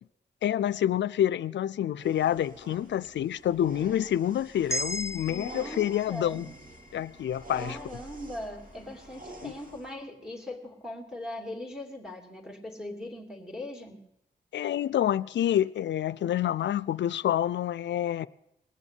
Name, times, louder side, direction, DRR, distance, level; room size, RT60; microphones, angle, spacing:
voice 1, 0.4-6.5 6.9-7.8 9.4-9.5 14.5-18.3, left 11 dB, 80° left, 0.4 m, -28 dB
sound 1, 2.0-9.9, right 1 dB, 50° right, 2.4 m, -47 dB
sound 2, 4.7-9.0, equal, 15° left, 0.8 m, -39 dB
voice 2, 5.3-6.4 7.6-14.0, left 1 dB, 5° right, 2.6 m, -40 dB
19.5 x 7.2 x 8.2 m
cardioid pair, 55°, 19 cm